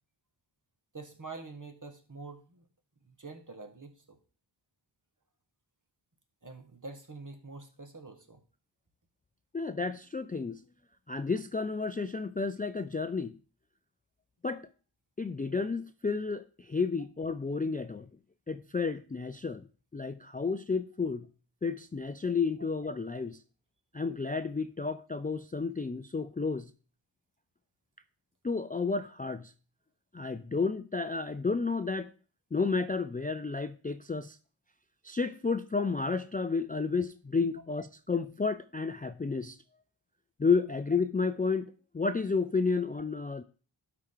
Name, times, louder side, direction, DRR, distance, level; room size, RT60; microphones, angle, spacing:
voice 1, 0.9-2.6 3.0-4.2 6.4-8.4 40.7-40.8, right 3 dB, 40° right, 1.4 m, -46 dB
voice 2, 9.5-10.6 11.1-13.3 14.4-14.7 15.2-18.1 18.5-19.7 19.9-21.3 21.6-23.4 23.9-26.7 28.4-29.5 30.1-32.1 32.5-34.4 35.0-39.6 40.4-43.4, left 4 dB, 20° left, 0.3 m, -31 dB
12.0 x 4.8 x 3.7 m
wide cardioid pair, 50°, 47 cm